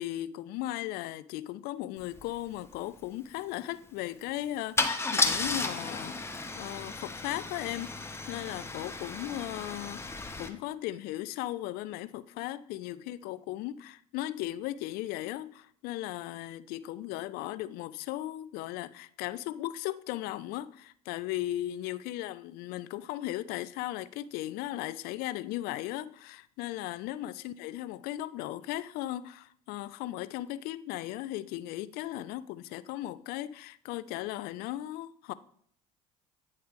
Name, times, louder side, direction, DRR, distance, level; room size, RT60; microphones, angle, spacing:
voice 1, 0.0-35.3, left 15 dB, 65° left, 0.4 m, -37 dB
Car / Engine starting / Idling, 2.1-2.2 2.5-2.8 4.8-10.5, left 3 dB, 15° left, 0.9 m, -33 dB
sound 1, 5.3-7.7, right 3 dB, 60° right, 2.8 m, -57 dB
9.4 x 3.2 x 5.2 m
hypercardioid pair, 70°, 17 cm